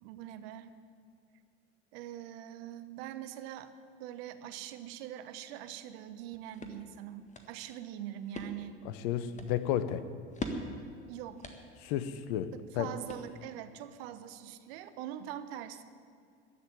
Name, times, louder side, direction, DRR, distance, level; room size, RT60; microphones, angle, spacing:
voice 1, 0.0-0.7 1.9-3.7 4.0-8.8 11.1-11.5 12.5-15.8, right 11 dB, 60° right, 11 dB, 1.0 m, -43 dB
sound 1, 6.1-13.7, left 2 dB, 20° left, 1.7 m, -45 dB
voice 2, 8.8-10.0 11.8-12.9, left 10 dB, 60° left, 13 dB, 1.0 m, -32 dB
14.5 x 6.9 x 9.8 m, 2.3 s
figure-of-eight pair, 75°, 34 cm